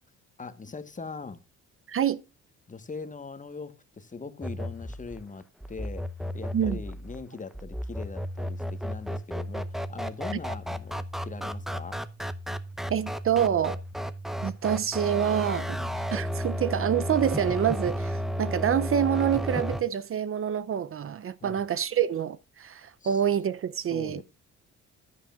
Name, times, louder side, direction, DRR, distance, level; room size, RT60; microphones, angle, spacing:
voice 1, 0.4-1.4 2.7-6.1 6.3-12.0 15.7-15.9 21.4-21.6 23.0-23.3 23.9-24.2, left 4 dB, 25° left, 1.3 m, -41 dB
voice 2, 1.9-2.2 6.5-6.8 12.9-13.8 14.4-15.8 16.1-24.2, right 9 dB, 45° right, 0.6 m, -27 dB
sound 1, 4.4-19.8, equal, ahead, 0.7 m, -33 dB
14.5 x 9.9 x 2.4 m
cardioid pair, 90°, 30 cm